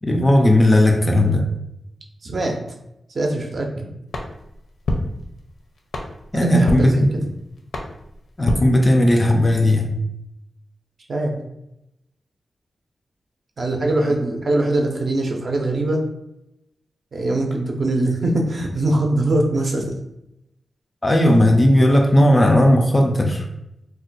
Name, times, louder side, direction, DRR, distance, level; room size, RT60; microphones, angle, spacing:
voice 1, 0.0-1.5 6.3-7.1 8.4-9.9 21.0-23.4, left 1 dB, 20° left, 3 dB, 0.3 m, -16 dB
voice 2, 2.2-2.6 3.1-3.9 6.3-7.1 11.1-11.4 13.6-16.0 17.1-20.0, right 2 dB, 45° right, 1 dB, 0.5 m, -22 dB
sound 1, 4.1-9.4, left 1 dB, 75° left, 0.5 m, -29 dB
2.5 x 2.2 x 3.9 m, 0.84 s
wide cardioid pair, 155°, 0 cm